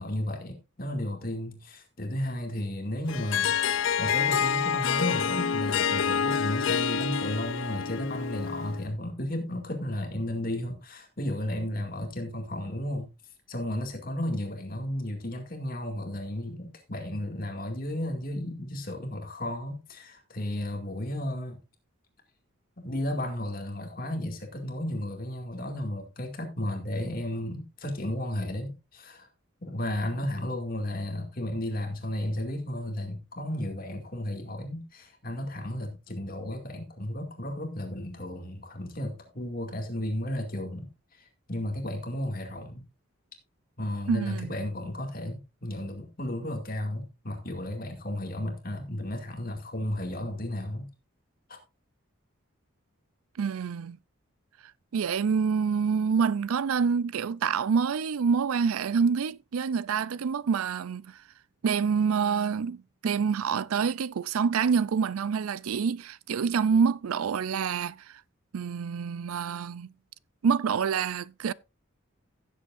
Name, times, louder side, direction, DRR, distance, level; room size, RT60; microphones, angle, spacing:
voice 1, 0.0-13.1 13.5-21.6 22.8-29.3 29.6-42.8 43.8-50.9, left 1 dB, 40° left, 2.2 m, -33 dB
Harp, 3.1-8.9, left 7 dB, 65° left, 0.5 m, -27 dB
voice 2, 44.1-44.5 53.4-54.0 54.9-61.2 61.6-68.0 68.5-69.9 70.4-71.5, right 6 dB, 85° right, 0.4 m, -27 dB
16.0 x 7.7 x 2.5 m
head